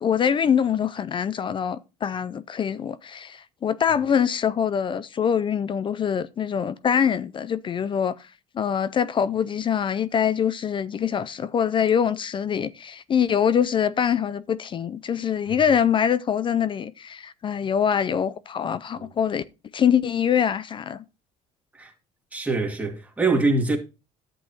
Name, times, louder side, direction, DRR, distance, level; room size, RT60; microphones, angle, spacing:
voice 1, 0.0-8.3 8.5-19.4 19.7-21.0, left 8 dB, 35° left, 0.4 m, -24 dB
voice 2, 22.3-23.8, right 3 dB, 10° right, 2.2 m, -24 dB
11.0 x 7.7 x 2.9 m
cardioid pair, 110°, 15 cm